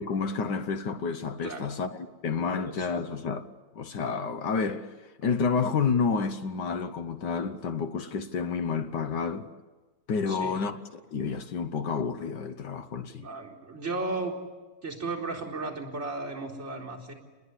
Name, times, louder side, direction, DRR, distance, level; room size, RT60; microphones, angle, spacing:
voice 1, 0.0-3.5 3.7-4.9 5.2-9.5 10.1-10.8 11.1-13.3, left 5 dB, 65° left, 1.6 m, -29 dB
voice 2, 1.4-1.8 2.5-3.0 10.3-10.6 13.1-14.4 14.8-17.1, right 3 dB, 35° right, 4.5 m, -35 dB
29.5 x 21.0 x 9.8 m
omnidirectional pair, 2.0 m